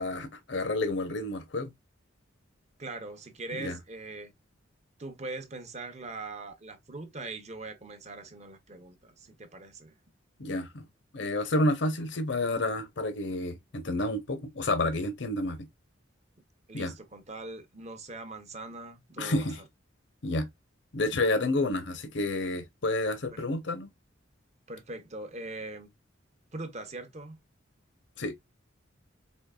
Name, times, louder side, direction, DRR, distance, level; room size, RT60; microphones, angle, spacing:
voice 1, 0.0-1.7 3.5-3.8 10.4-10.9 11.1-15.7 16.7-16.9 19.2-19.6 20.2-20.5 20.9-23.9 28.2-28.4, left 2 dB, 60° left, 0.7 m, -30 dB
voice 2, 2.8-4.3 5.0-9.9 16.7-19.5 23.3-23.5 24.7-25.9 26.5-27.4, right 2 dB, 35° right, 0.7 m, -41 dB
4.5 x 2.9 x 2.2 m
head